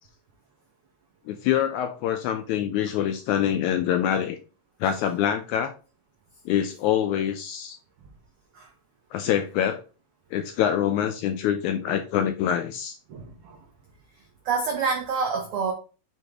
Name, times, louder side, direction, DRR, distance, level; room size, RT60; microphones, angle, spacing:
voice 1, 1.3-4.4 4.8-5.7 6.4-7.8 9.1-9.8 10.3-13.0, left 10 dB, 80° left, 1.7 m, -25 dB
voice 2, 13.1-13.6 14.4-15.7, right 5 dB, 80° right, 1.2 m, -27 dB
6.5 x 4.0 x 3.6 m
omnidirectional pair, 3.8 m